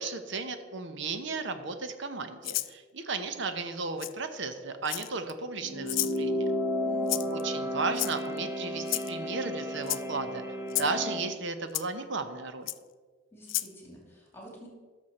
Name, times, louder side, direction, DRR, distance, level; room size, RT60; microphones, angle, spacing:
voice 1, 0.0-6.5 7.3-10.4 10.8-12.7, right 4 dB, 60° right, 9 dB, 0.9 m, -34 dB
Rattle (instrument), 2.4-2.7 4.0-4.1 4.9-5.3 5.9-6.2 7.1-7.4 8.0-8.4 8.9-9.1 9.8-10.0 10.7-10.9 11.8-11.9 12.7-12.8 13.5-13.7, left 18 dB, 65° left, 0.4 m, -31 dB
sound 1, 5.6-11.3, left 1 dB, 15° right, 0.9 m, -33 dB
voice 2, 6.8-7.3 13.3-14.7, equal, 10° left, -1 dB, 2.4 m, -49 dB
13.0 x 6.3 x 4.3 m, 1.5 s
head